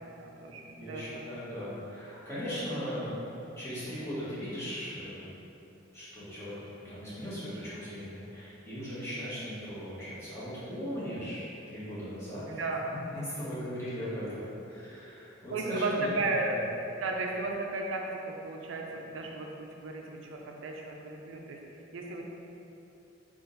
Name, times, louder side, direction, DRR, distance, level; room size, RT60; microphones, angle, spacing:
voice 1, 0.0-1.3 12.5-12.8 15.5-21.6 21.9-22.2, right 2 dB, 70° right, 1 dB, 0.5 m, -34 dB
voice 2, 0.8-5.3 5.9-6.5 6.8-12.6 13.1-16.1, equal, 15° left, -12 dB, 1.3 m, -38 dB
3.8 x 2.5 x 3.9 m, 2.9 s
head